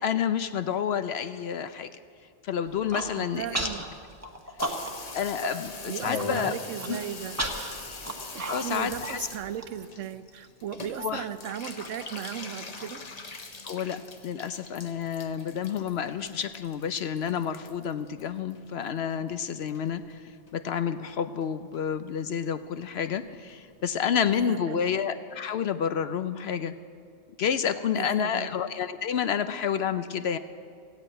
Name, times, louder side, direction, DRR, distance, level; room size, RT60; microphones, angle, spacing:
voice 1, 0.0-1.9 2.4-3.7 4.2-4.3 5.1-6.6 6.9-7.0 8.5-9.3 11.0-11.2 13.6-20.2 20.5-26.7 27.4-30.4, left 8 dB, 65° left, 11 dB, 0.8 m, -29 dB
Human voice, 2.7-3.1 3.5-3.9 4.2-5.1 5.4-5.5 5.9-6.3 6.8-9.7, right 1 dB, 15° right, 1.0 m, -33 dB
voice 2, 3.2-3.8 5.9-7.8 8.3-13.0 24.3-24.8 27.9-28.5, right 10 dB, 80° right, 13 dB, 1.0 m, -37 dB
Water tap faucet / Bathtub (filling or washing), 4.6-19.1 19.4-20.1 20.5-20.6 20.8-20.9 21.1-21.5 21.7-21.8 22.1-22.2 22.4-22.5 22.8-22.9 23.1-23.2 23.5-23.6 23.9-24.0 24.3-24.4, left 3 dB, 35° left, 0.9 m, -42 dB
15.0 x 8.4 x 8.8 m, 2.3 s
omnidirectional pair, 1.3 m